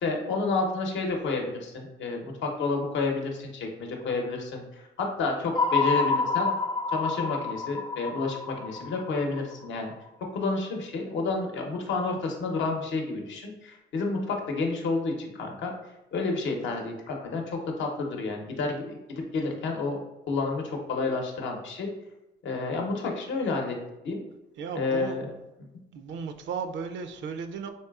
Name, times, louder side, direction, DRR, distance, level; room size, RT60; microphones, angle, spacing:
voice 1, 0.0-6.5 6.9-9.9 10.3-15.7 16.1-20.0 20.3-21.9 22.4-23.8 24.0-24.2 24.7-25.3, left 3 dB, 70° left, 2 dB, 0.8 m, -30 dB
sound 1, 5.5-9.8, left 4 dB, 25° left, 0.4 m, -28 dB
voice 2, 24.6-25.2 25.9-27.7, right 6 dB, 70° right, 8 dB, 0.4 m, -35 dB
4.2 x 3.2 x 2.3 m, 0.98 s
cardioid pair, 90°, 20 cm